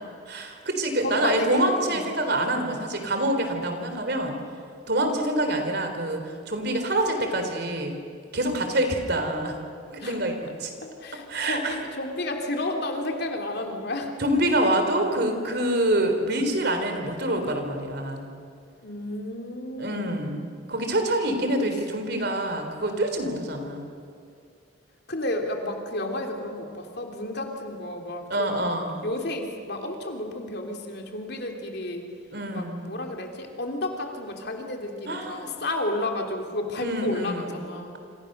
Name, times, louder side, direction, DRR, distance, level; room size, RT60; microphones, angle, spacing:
voice 1, 0.3-4.4 4.9-8.0 8.3-9.6 9.9-10.7 11.1-11.8 14.2-18.3 19.8-23.9 28.3-29.0 32.3-32.9 35.1-35.5 36.8-37.6, right 1 dB, 55° right, 5 dB, 3.6 m, -26 dB
voice 2, 1.0-2.0 10.0-10.2 10.8-14.1 18.8-20.4 21.5-21.7 25.1-28.8 29.0-32.0 32.5-37.9, left 1 dB, 55° left, 3 dB, 3.1 m, -32 dB
27.5 x 27.0 x 6.7 m, 2.4 s
head